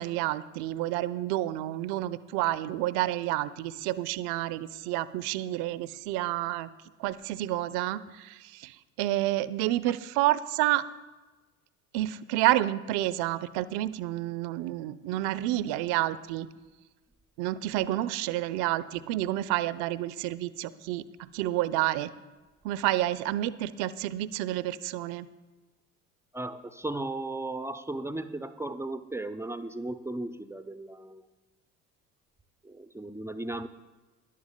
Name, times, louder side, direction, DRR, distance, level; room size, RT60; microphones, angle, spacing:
voice 1, 0.0-6.7 7.0-10.8 11.9-16.5 17.4-21.0 21.3-22.1 22.6-25.3, right 15 dB, 60° right, 16 dB, 0.6 m, -29 dB
voice 2, 26.3-31.3 32.6-33.7, right 2 dB, 5° right, 9 dB, 0.4 m, -36 dB
19.5 x 11.0 x 2.2 m, 1.2 s
hypercardioid pair, 60°, 45 cm